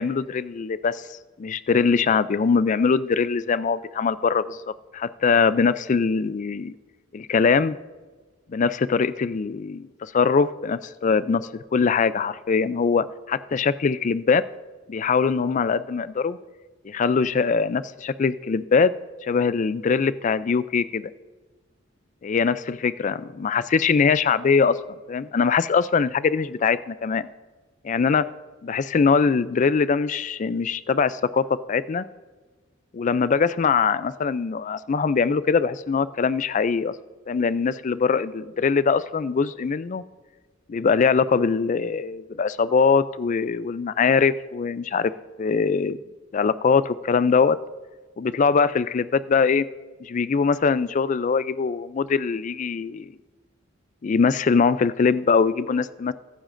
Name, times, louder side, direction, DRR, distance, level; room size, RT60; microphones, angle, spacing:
voice 1, 0.0-4.6 4.9-6.8 7.1-7.8 8.5-14.4 14.9-16.4 16.8-18.9 19.2-21.1 22.2-24.8 25.1-27.3 27.8-28.3 28.6-32.0 32.9-36.9 37.3-40.0 40.7-45.1 45.4-46.0 46.3-47.6 48.2-49.7 50.0-53.1 54.0-56.1, left 5 dB, 40° left, 16 dB, 0.3 m, -22 dB
21.5 x 9.9 x 2.6 m, 1.3 s
head